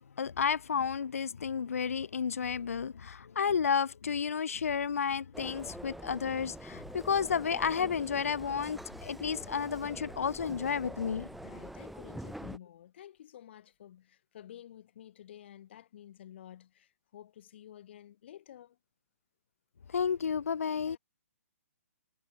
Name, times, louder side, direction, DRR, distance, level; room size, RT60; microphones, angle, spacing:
voice 1, 0.2-11.3 19.9-21.0, left 6 dB, 70° left, 0.4 m, -31 dB
sound 1, 5.3-12.6, right 1 dB, ahead, 2.4 m, -45 dB
voice 2, 11.4-18.8 20.6-21.0, left 11 dB, 45° left, 6.9 m, -51 dB
figure-of-eight pair, 130°, 8 cm